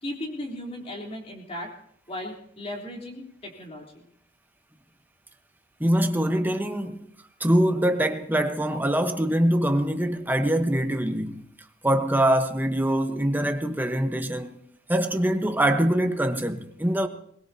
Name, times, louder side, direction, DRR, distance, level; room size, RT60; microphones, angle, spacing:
voice 1, 0.0-1.7 2.1-4.0, left 1 dB, 35° left, 3.5 m, -36 dB
voice 2, 5.8-7.0 7.4-11.4 11.8-14.6 14.9-17.1, right 1 dB, 10° right, 1.1 m, -23 dB
21.5 x 20.5 x 2.8 m
head